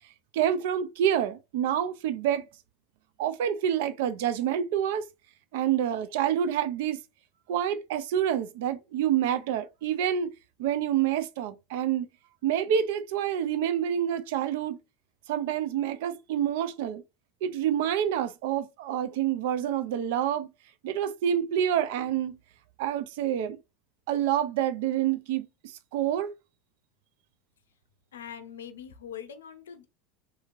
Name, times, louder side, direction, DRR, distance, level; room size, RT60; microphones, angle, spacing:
voice 1, 0.3-2.5 3.2-5.1 5.5-7.0 7.5-10.3 10.6-12.1 12.4-14.8 15.3-17.0 17.4-20.5 20.8-22.4 22.8-23.6 24.1-26.3, right 10 dB, 65° right, 0.4 m, -27 dB
voice 2, 28.1-29.9, left 8 dB, 80° left, 0.5 m, -42 dB
2.8 x 2.7 x 2.4 m
hypercardioid pair, 75°, 0 cm